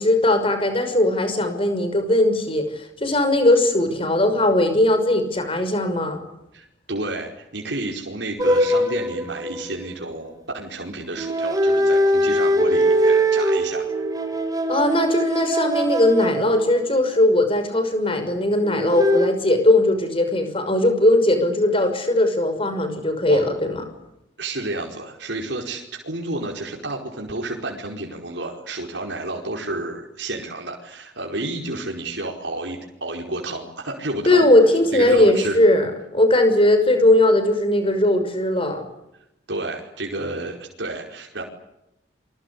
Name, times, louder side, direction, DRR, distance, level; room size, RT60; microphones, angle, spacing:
voice 1, 0.0-6.2 14.7-23.8 34.3-38.8, left 1 dB, 30° left, 8 dB, 6.0 m, -19 dB
voice 2, 6.5-13.9 23.3-23.5 24.4-34.5 34.9-35.6 39.5-41.4, right 2 dB, 70° right, 0 dB, 4.9 m, -30 dB
sound 1, 8.4-10.0 11.1-17.2 18.6-19.3, equal, 20° right, 3.9 m, -21 dB
29.0 x 24.5 x 8.5 m, 0.85 s
head